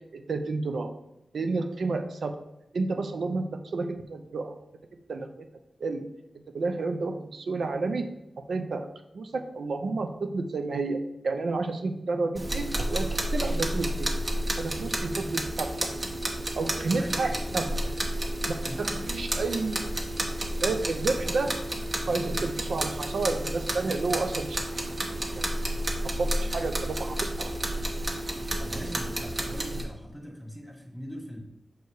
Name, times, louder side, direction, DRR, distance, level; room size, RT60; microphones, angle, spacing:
voice 1, 0.1-0.9 1.3-2.4 2.7-4.6 5.1-5.5 5.8-6.1 6.5-8.1 8.5-8.9 9.1-14.1 14.6-15.9 16.5-17.7 18.5-19.9 20.6-21.6 22.1-24.6 25.3-25.5 26.2-27.5, right 3 dB, 85° right, 6 dB, 0.6 m, -30 dB
sound 1, 12.4-29.8, right 1 dB, 40° right, 1.3 m, -31 dB
voice 2, 17.0-17.8 18.6-19.1 28.6-31.4, equal, 5° right, 1 dB, 1.7 m, -41 dB
6.8 x 4.6 x 4.8 m, 0.89 s
wide cardioid pair, 110°, 0 cm